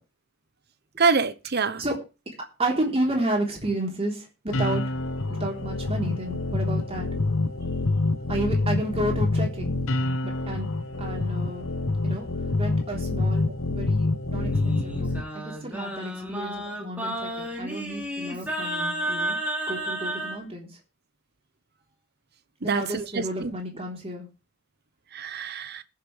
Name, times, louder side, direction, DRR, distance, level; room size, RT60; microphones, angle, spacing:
voice 1, 1.0-1.8 22.6-23.0 23.4-23.5 25.1-25.8, right 4 dB, 50° right, 1.0 m, -25 dB
voice 2, 2.6-5.0 5.4-7.1 8.3-9.8 10.2-10.7 11.0-11.6 12.0-12.3 12.6-19.4 19.7-20.7 22.6-24.3, right 1 dB, 30° right, 3.7 m, -31 dB
sound 1, 4.5-15.2, left 2 dB, 70° left, 1.0 m, -26 dB
Singing, 14.3-20.4, right 1 dB, 5° right, 3.4 m, -32 dB
21.0 x 7.6 x 3.4 m
head